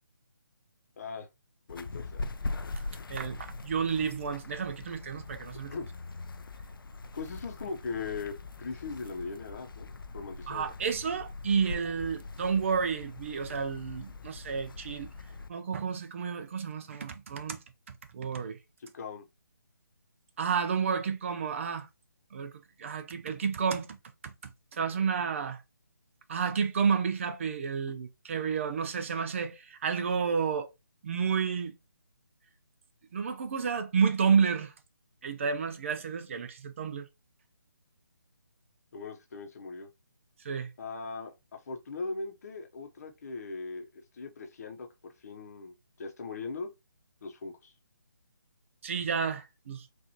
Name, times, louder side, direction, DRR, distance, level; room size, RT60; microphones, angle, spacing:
voice 1, 1.0-1.3 1.7-2.2 5.7-5.8 7.1-10.7 18.9-19.3 38.9-39.9 40.8-46.7 47.2-47.7, left 4 dB, 45° left, 0.9 m, -39 dB
sound 1, 1.7-15.5, left 3 dB, 85° left, 0.5 m, -42 dB
voice 2, 3.1-5.8 10.5-15.1 15.5-17.6 18.1-18.6 20.4-21.9 22.3-22.5 22.8-24.0 24.2-25.6 26.3-30.7 31.0-31.7 33.1-34.7 35.2-37.1 40.4-40.7 48.8-49.9, right 6 dB, 35° right, 0.6 m, -30 dB
4.1 x 2.6 x 2.8 m
figure-of-eight pair, 160°, 11 cm